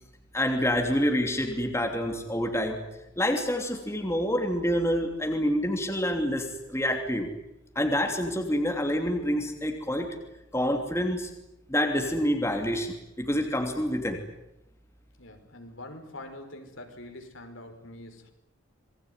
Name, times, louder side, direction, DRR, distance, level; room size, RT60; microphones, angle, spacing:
voice 1, 0.3-2.8 3.2-7.3 7.7-10.1 10.5-11.3 11.7-14.2, equal, 15° left, 3 dB, 3.0 m, -27 dB
voice 2, 15.2-18.3, left 1 dB, 75° left, 5 dB, 5.3 m, -44 dB
27.5 x 21.5 x 9.5 m, 0.87 s
head